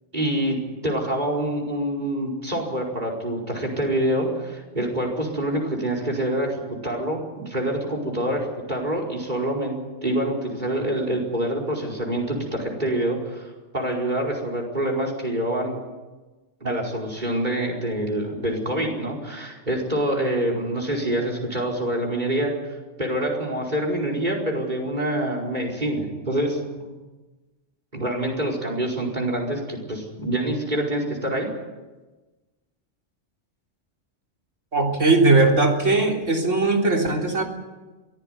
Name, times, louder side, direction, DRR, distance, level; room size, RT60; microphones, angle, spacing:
voice 1, 0.1-9.8 10.0-15.7 16.6-22.5 23.0-26.9 27.9-31.5, right 1 dB, 35° right, 2 dB, 5.1 m, -26 dB
voice 2, 34.7-37.4, right 3 dB, 75° right, 1 dB, 3.9 m, -19 dB
23.0 x 15.5 x 9.5 m, 1.2 s
omnidirectional pair, 1.3 m